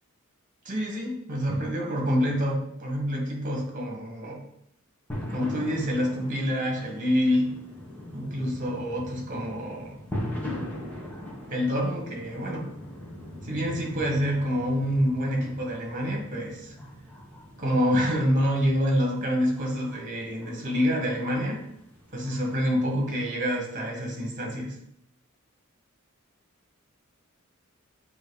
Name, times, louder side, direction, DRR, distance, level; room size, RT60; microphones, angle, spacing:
voice 1, 0.6-4.4 5.3-7.5 8.1-10.0 11.5-12.7 13.4-16.7 17.6-21.6 22.1-24.7, equal, 40° right, 0 dB, 1.7 m, -27 dB
sound 1, 5.1-23.1, left 1 dB, 10° left, 1.4 m, -40 dB
8.5 x 3.0 x 4.0 m, 0.74 s
head